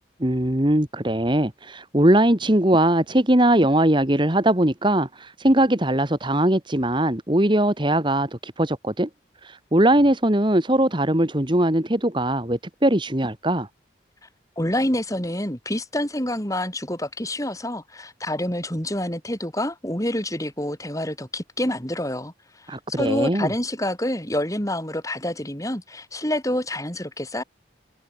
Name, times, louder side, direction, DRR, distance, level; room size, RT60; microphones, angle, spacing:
voice 1, 0.2-9.1 9.4-13.7 22.7-23.5, right 1 dB, 25° right, 1.8 m, -20 dB
voice 2, 14.6-27.4, left 1 dB, 20° left, 6.3 m, -27 dB
head